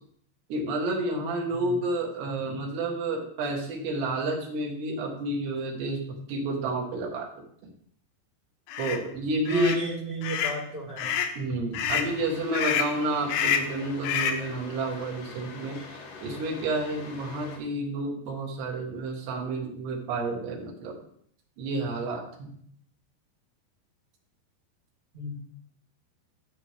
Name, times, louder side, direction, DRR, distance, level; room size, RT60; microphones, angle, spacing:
voice 1, 0.5-7.3 8.8-9.8 11.4-15.8 16.2-21.0 21.6-22.5, right 2 dB, 75° right, 1 dB, 3.5 m, -30 dB
sound 1, 8.7-9.0 9.5-9.8 10.2-10.6 11.0-11.4 11.7-12.1 12.5-13.0 13.3-13.7 14.0-14.5, left 8 dB, 80° left, 2.8 m, -28 dB
voice 2, 9.5-11.1 11.9-12.1 25.1-25.3, right 3 dB, 10° right, -5 dB, 3.6 m, -34 dB
sound 2, 11.9-17.6, left 4 dB, 65° left, 2.8 m, -44 dB
13.0 x 5.3 x 3.5 m, 0.63 s
omnidirectional pair, 5.0 m